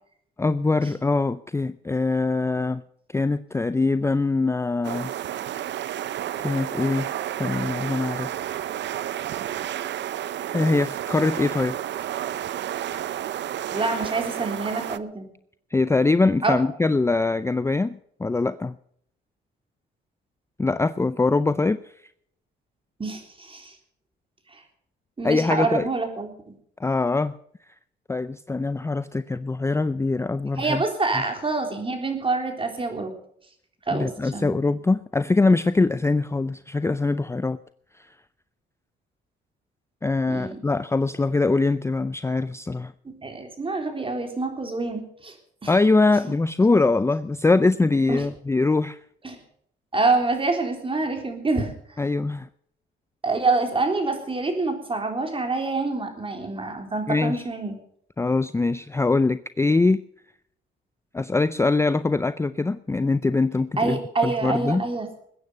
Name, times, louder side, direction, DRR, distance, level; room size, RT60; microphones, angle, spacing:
voice 1, 0.4-2.8 3.1-5.1 6.4-7.1 7.4-8.4 10.5-11.8 15.7-18.7 20.6-21.8 25.2-25.9 26.8-27.3 28.1-30.8 33.9-37.6 40.0-42.9 45.7-49.0 52.0-52.5 57.1-57.4 58.2-60.0 61.1-64.8, left 3 dB, 15° left, 13 dB, 0.5 m, -23 dB
sound 1, 4.8-15.0, right 11 dB, 65° right, 0.7 m, -31 dB
voice 2, 13.7-15.3 16.4-16.6 23.0-23.7 24.5-24.6 25.2-26.6 30.6-33.1 33.9-34.6 40.3-40.6 43.1-45.3 45.6-45.7 48.1-48.2 49.2-49.4 49.9-51.7 53.2-57.8 63.8-65.1, right 3 dB, 25° right, 4 dB, 3.7 m, -26 dB
21.0 x 9.6 x 5.3 m, 0.67 s
cardioid pair, 90°, 20 cm